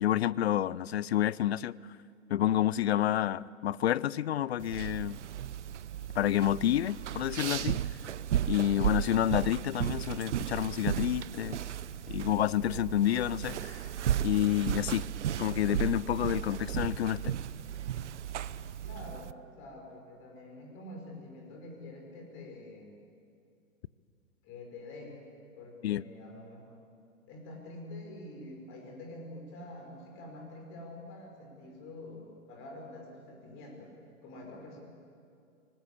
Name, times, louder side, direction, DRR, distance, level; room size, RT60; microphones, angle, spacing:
voice 1, 0.0-1.8 2.3-5.2 6.2-7.8 8.5-11.6 12.1-13.9 14.2-15.1 15.4-17.4 25.8-26.0, left 12 dB, 50° left, 22 dB, 0.6 m, -29 dB
sound 1, 4.6-19.3, right 11 dB, 60° right, 0.8 m, -35 dB
voice 2, 18.8-22.9 24.4-25.2 25.6-26.7 27.3-33.9 34.2-34.8, left 1 dB, 30° left, 1 dB, 5.7 m, -46 dB
24.5 x 19.5 x 8.5 m, 2.4 s
figure-of-eight pair, 115°, 41 cm